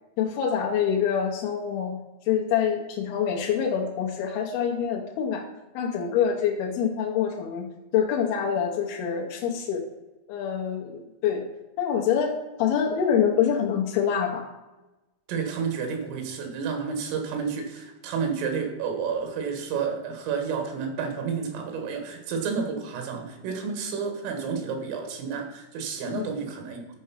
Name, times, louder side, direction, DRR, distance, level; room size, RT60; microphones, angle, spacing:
voice 1, 0.2-2.0 2.3-5.4 5.7-7.7 7.9-9.8 10.3-11.5 11.8-14.5 26.1-26.3, left 8 dB, 90° left, 0 dB, 2.1 m, -25 dB
voice 2, 15.3-27.0, right 6 dB, 90° right, 4 dB, 4.1 m, -30 dB
13.0 x 4.7 x 5.7 m, 1.1 s
omnidirectional pair, 5.6 m